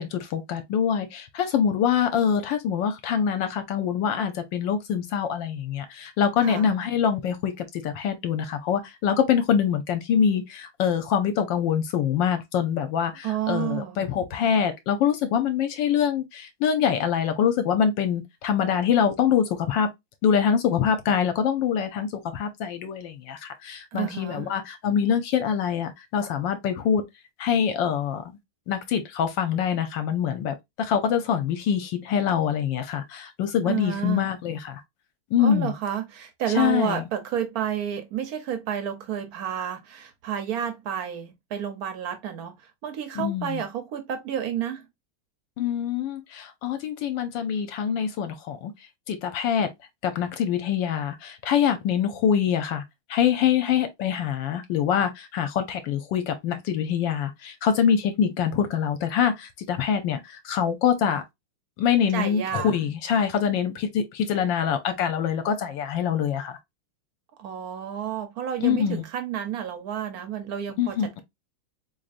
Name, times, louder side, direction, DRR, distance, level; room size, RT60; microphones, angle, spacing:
voice 1, 0.0-19.9 20.2-27.0 27.4-28.2 28.7-34.8 35.3-35.7 36.5-37.0 43.2-43.6 45.6-48.7 49.1-49.7 50.0-52.8 53.1-61.2 61.8-66.5 68.6-69.0 70.8-71.2, left 8 dB, 75° left, 1.2 m, -24 dB
voice 2, 6.4-6.7 13.2-14.0 23.9-24.5 33.6-34.3 35.4-44.9 62.1-62.8 67.4-71.2, right 9 dB, 70° right, 0.8 m, -30 dB
4.0 x 3.2 x 2.4 m
omnidirectional pair, 2.2 m